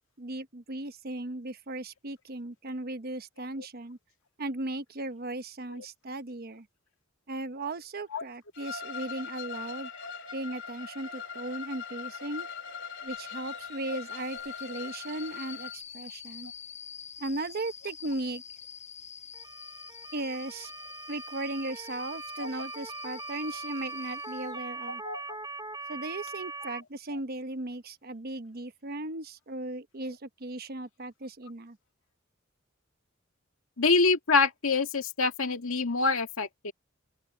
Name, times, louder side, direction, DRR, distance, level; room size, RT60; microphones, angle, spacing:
voice 1, 0.2-4.0 4.4-6.7 7.3-9.9 10.3-12.5 13.0-16.5 17.2-18.4 20.1-20.7 21.1-25.0 25.9-31.8, right 2 dB, 50° right, 1.0 m, -37 dB
Bowed string instrument, 8.5-15.7, left 6 dB, 60° left, 2.8 m, -41 dB
sound 1, 13.1-24.7 26.1-26.3, left 8 dB, 35° left, 6.3 m, -47 dB
Motor vehicle (road) / Siren, 19.3-26.8, right 3 dB, 20° right, 2.8 m, -41 dB
voice 2, 33.8-36.7, left 4 dB, 80° left, 2.0 m, -26 dB
open air
head